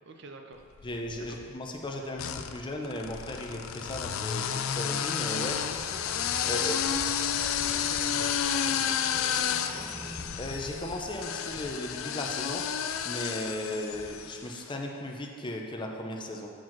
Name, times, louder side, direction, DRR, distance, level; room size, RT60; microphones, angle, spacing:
voice 1, 0.0-0.9 1.1-1.4 6.4-7.0 7.4-9.9, right 3 dB, 60° right, 4 dB, 0.6 m, -46 dB
sound 1, 0.8-1.4 2.2-14.5, left 8 dB, 90° left, 0.4 m, -31 dB
voice 2, 0.8-5.6 6.5-6.8 10.4-12.6 13.0-16.5, left 1 dB, 25° left, 1 dB, 0.6 m, -36 dB
sound 2, 4.4-11.8, equal, 5° right, 1.0 m, -46 dB
7.6 x 4.9 x 5.9 m, 2.3 s
head